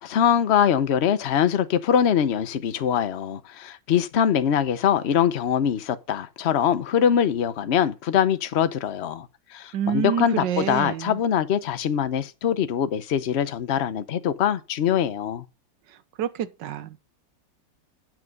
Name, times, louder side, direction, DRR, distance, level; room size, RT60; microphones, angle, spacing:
voice 1, 0.0-15.4, left 9 dB, 55° left, 0.7 m, -23 dB
voice 2, 9.7-11.2 16.2-17.1, right 9 dB, 75° right, 1.5 m, -28 dB
9.0 x 6.1 x 5.2 m
omnidirectional pair, 2.0 m